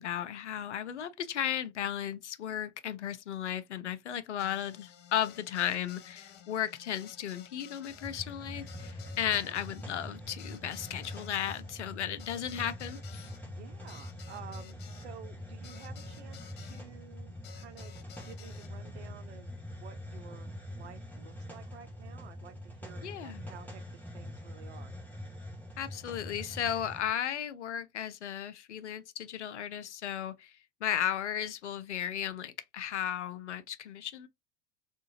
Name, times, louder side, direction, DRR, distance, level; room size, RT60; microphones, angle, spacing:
voice 1, 0.0-13.3 23.0-23.4 25.8-30.5 30.8-34.3, left 10 dB, 70° left, 0.6 m, -35 dB
sound 1, 4.4-16.8 17.4-18.7, left 9 dB, 30° left, 0.6 m, -54 dB
Hiss, 7.9-27.1, left 1 dB, 5° left, 1.4 m, -44 dB
voice 2, 9.3-9.7 13.4-23.8 24.1-24.9, right 8 dB, 65° right, 0.7 m, -52 dB
3.4 x 2.7 x 2.9 m
figure-of-eight pair, 85°, 36 cm